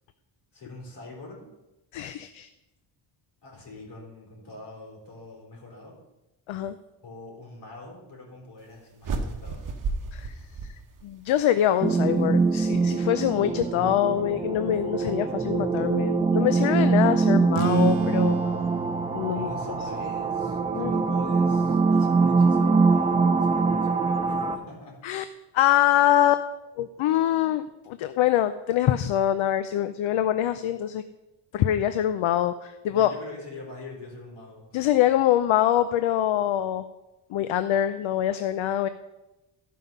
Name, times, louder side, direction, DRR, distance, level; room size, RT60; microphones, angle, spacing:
voice 1, 0.5-1.5 3.4-6.0 7.0-9.7 19.3-25.0 32.8-34.9, left 2 dB, 50° left, -2 dB, 4.4 m, -44 dB
voice 2, 1.9-2.5 6.5-6.8 10.1-10.3 11.0-18.4 19.1-19.5 20.7-21.0 25.0-25.2 25.5-26.4 26.8-31.0 31.5-33.1 34.7-36.8 37.3-38.9, left 11 dB, 70° left, 11 dB, 0.6 m, -24 dB
sound 1, 9.0-11.4, right 3 dB, 40° right, 1.1 m, -32 dB
sound 2, 11.8-24.6, right 4 dB, 15° right, 0.4 m, -23 dB
sound 3, 17.5-22.6, right 15 dB, 75° right, 0.6 m, -36 dB
14.0 x 5.6 x 5.4 m, 0.99 s
cardioid pair, 140°, 50 cm